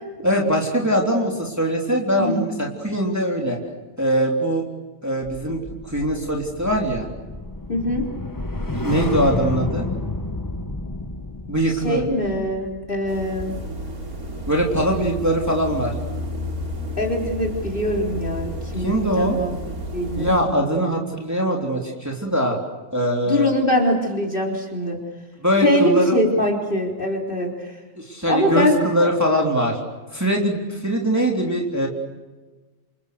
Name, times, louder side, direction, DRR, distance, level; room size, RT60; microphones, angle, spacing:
voice 1, 0.2-3.6 4.0-4.6 5.0-7.1 8.7-9.9 11.5-12.0 14.5-15.9 18.8-19.4 20.2-22.6 22.9-23.5 25.4-26.2 28.0-29.8 30.1-31.9, equal, 10° right, -1 dB, 3.4 m, -22 dB
sound 1, 5.2-15.6 16.0-16.3, left 2 dB, 15° left, 1.0 m, -31 dB
voice 2, 7.7-8.1 11.8-13.5 17.0-19.5 19.9-20.3 23.2-25.0 25.6-27.8 28.3-28.7 29.0-29.1, left 1 dB, 35° left, 0 dB, 4.3 m, -23 dB
sound 2, 13.1-20.4, equal, 85° right, 3.7 m, -31 dB
28.5 x 27.0 x 6.8 m, 1.3 s
omnidirectional pair, 1.5 m